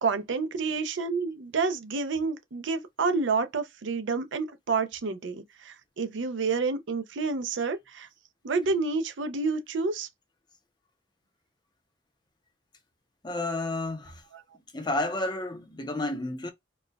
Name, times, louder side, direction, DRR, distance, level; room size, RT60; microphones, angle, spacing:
voice 1, 0.0-8.1 8.4-10.1, right 4 dB, 80° right, 0.5 m, -29 dB
voice 2, 13.2-14.2 14.7-16.5, left 2 dB, 25° left, 0.6 m, -31 dB
4.1 x 2.3 x 2.2 m
head